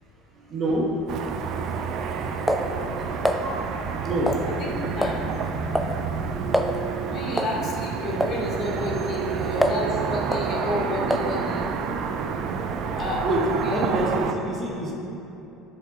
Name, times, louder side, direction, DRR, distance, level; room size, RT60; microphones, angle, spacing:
voice 1, 0.4-1.3 3.0-3.7 4.0-4.3 13.2-13.4 13.7-14.9, right 1 dB, 40° right, -2 dB, 1.3 m, -27 dB
Car passing by / Traffic noise roadway noise, 1.1-14.3, right 6 dB, 60° right, 0.4 m, -29 dB
sound 1, 1.2-3.4 4.3-4.7 5.0-5.2 5.5-6.0 6.2-6.3 6.5-6.8 7.4-7.6 8.2-8.4 8.9-9.9 10.3-10.5 11.1-11.4, equal, ahead, 0.4 m, -27 dB
voice 2, 4.4-5.3 7.1-11.7 12.9-13.3 13.6-13.8, left 2 dB, 45° left, -1 dB, 1.1 m, -31 dB
7.0 x 4.4 x 3.8 m, 2.9 s
supercardioid pair, 85°, 0 cm